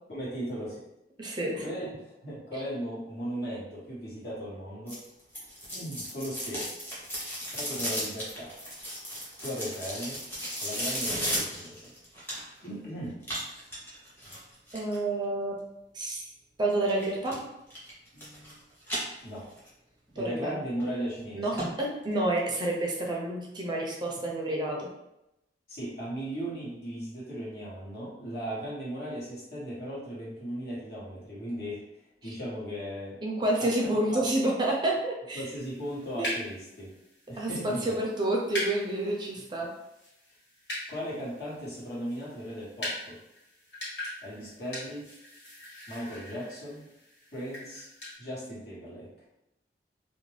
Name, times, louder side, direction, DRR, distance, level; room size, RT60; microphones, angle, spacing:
voice 1, 0.1-0.8 1.5-5.0 5.7-6.7 7.4-8.5 9.4-10.2 10.6-11.9 12.6-13.2 18.1-18.6 19.2-19.5 20.2-21.6 25.7-31.8 32.2-33.2 33.6-33.7 34.1-34.3 35.3-36.9 37.3-37.9 39.4-39.5 40.9-43.2 44.2-45.0 45.9-46.9 47.3-47.9 48.2-49.1, equal, 60° left, -7 dB, 1.2 m, -37 dB
voice 2, 1.2-1.6 10.4-10.5 14.7-15.6 15.9-16.3 16.6-17.3 20.2-20.5 21.3-24.9 33.2-35.5 36.2-36.3 37.4-39.7, right 1 dB, 25° right, -2 dB, 0.5 m, -29 dB
sound 1, 4.9-12.7 13.2-15.0 16.9-17.4 17.7-18.5 18.8-19.7 20.1-20.2 20.8-20.9 21.2-21.3 21.6-21.7 22.0-22.1, equal, 10° left, 0.9 m, -35 dB
sound 2, 35.6-48.2, left 1 dB, 80° left, 1.4 m, -41 dB
2.5 x 2.1 x 3.2 m, 0.88 s
head